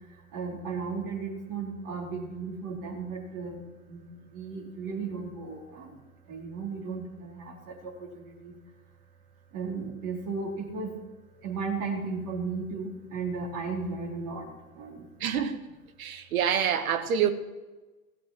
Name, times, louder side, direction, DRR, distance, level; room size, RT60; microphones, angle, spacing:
voice 1, 0.3-3.6 3.9-4.0 4.3-6.0 6.3-8.5 9.5-10.9 11.4-14.5 14.8-15.1, right 4 dB, 45° right, 4.2 m, -35 dB
voice 2, 15.2-15.6 16.0-17.3, right 8 dB, 75° right, 1.5 m, -26 dB
16.5 x 8.5 x 7.4 m
hypercardioid pair, 80°, 43 cm